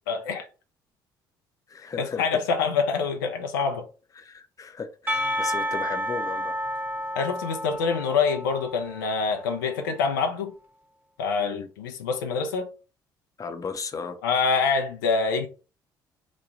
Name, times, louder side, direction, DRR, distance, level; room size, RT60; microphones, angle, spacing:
voice 1, 0.1-0.5 2.0-3.9 7.1-10.5 11.2-12.7 14.2-15.5, left 5 dB, 85° left, 0.5 m, -26 dB
voice 2, 1.7-2.4 4.2-6.5 11.4-11.7 13.4-14.2, left 5 dB, 30° left, 0.6 m, -35 dB
Percussion / Church bell, 5.1-9.6, equal, 20° right, 0.9 m, -31 dB
3.1 x 2.2 x 3.9 m
hypercardioid pair, 55°, 11 cm